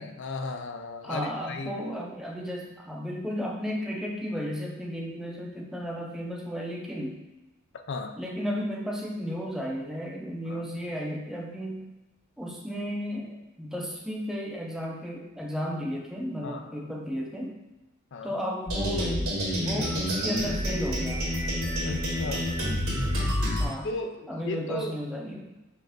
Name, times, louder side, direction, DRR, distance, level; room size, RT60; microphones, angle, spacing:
voice 1, 0.0-1.8 7.9-8.2 10.5-10.7 16.4-16.9 18.1-18.4 21.8-22.5 23.8-25.0, left 3 dB, 55° left, 6 dB, 0.4 m, -36 dB
voice 2, 1.0-7.2 8.2-11.9 12.4-17.6 18.2-19.2 19.5-21.2 23.6-23.9 24.3-25.5, equal, ahead, -2 dB, 0.5 m, -34 dB
sound 1, 18.7-23.7, equal, 85° right, 1.5 m, -28 dB
5.6 x 2.5 x 3.8 m, 1.0 s
head